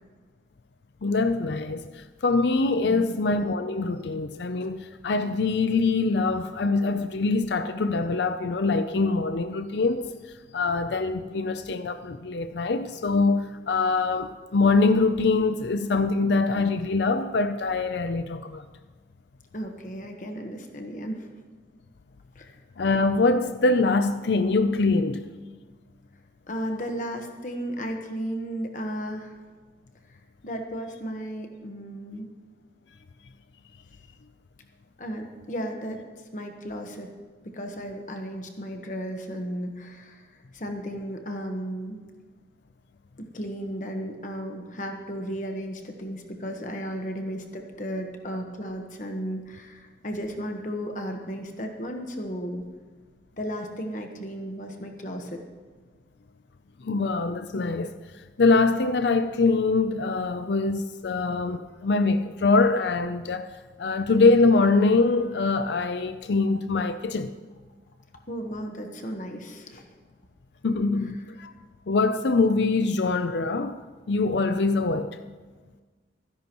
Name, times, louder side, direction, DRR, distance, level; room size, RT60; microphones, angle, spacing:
voice 1, 1.0-10.1 10.5-18.6 22.8-25.3 56.8-57.9 58.4-63.5 63.8-67.3 70.6-71.5 71.9-73.8 74.1-75.2, left 3 dB, 75° left, 0.5 m, -23 dB
voice 2, 19.5-21.3 22.3-22.5 26.5-29.3 30.4-32.3 35.0-36.0 36.3-37.1 37.5-40.2 40.5-42.0 43.3-52.7 53.4-55.4 68.3-69.9, equal, 45° left, 1.2 m, -34 dB
25.0 x 10.5 x 3.0 m
head